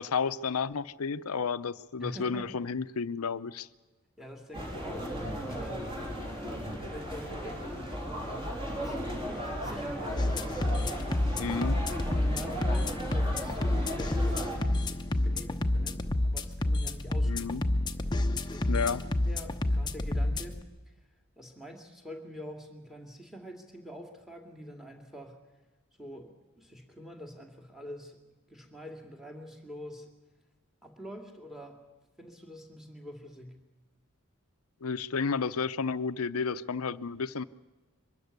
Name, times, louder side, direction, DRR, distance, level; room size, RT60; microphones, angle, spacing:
voice 1, 0.0-3.7 6.2-6.3 11.4-11.8 17.3-17.6 18.7-19.0 34.8-37.4, left 5 dB, 90° left, 15 dB, 0.7 m, -32 dB
voice 2, 2.0-2.5 4.2-5.1 5.4-5.9 6.4-8.5 8.8-10.2 10.9-11.4 12.0-17.5 18.1-18.8 19.2-20.6 20.9-21.0 21.4-25.4 26.0-28.2 28.5-30.1 30.8-31.8 32.2-33.6, equal, ahead, 4 dB, 2.3 m, -45 dB
sound 1, 4.5-14.6, equal, 25° right, 3.7 m, -36 dB
sound 2, 10.2-20.6, left 1 dB, 20° left, 0.9 m, -29 dB
23.5 x 13.5 x 9.6 m, 1.2 s
head